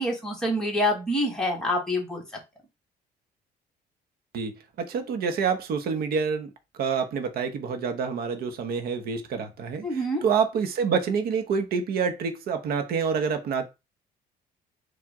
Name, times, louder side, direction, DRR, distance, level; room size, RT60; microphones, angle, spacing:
voice 1, 0.0-2.2 9.8-10.2, left 1 dB, 5° left, 1.8 m, -26 dB
voice 2, 4.8-6.5 6.8-13.6, right 6 dB, 65° right, 0.9 m, -27 dB
4.7 x 2.5 x 3.6 m
cardioid pair, 110°, 17 cm